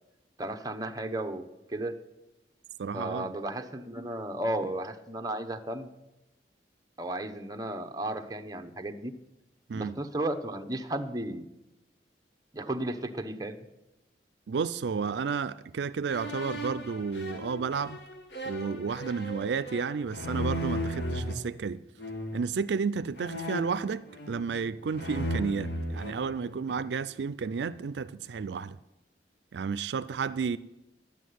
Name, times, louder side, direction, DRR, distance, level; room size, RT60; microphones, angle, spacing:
voice 1, 0.4-1.4 1.7-2.0 2.9-5.9 7.0-9.1 9.7-11.5 12.5-13.6, right 1 dB, 20° right, 0.8 m, -34 dB
voice 2, 2.8-3.3 9.7-9.9 14.5-18.0 18.4-21.8 22.3-28.8 29.5-30.6, right 5 dB, 75° right, 0.4 m, -32 dB
sound 1, 16.1-21.3 22.0-22.5 23.2-24.6 24.9-26.9, equal, 75° left, 2.1 m, -36 dB
11.0 x 8.3 x 9.4 m
head